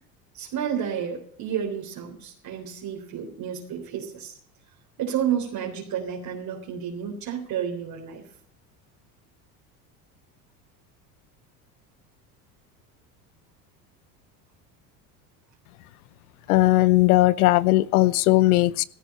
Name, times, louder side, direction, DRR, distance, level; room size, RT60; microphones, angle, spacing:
voice 1, 0.3-4.4 5.0-8.3, right 8 dB, 55° right, 3.7 m, -31 dB
voice 2, 16.5-18.8, left 18 dB, 80° left, 0.8 m, -18 dB
16.0 x 14.0 x 4.3 m
hypercardioid pair, 85°, 43 cm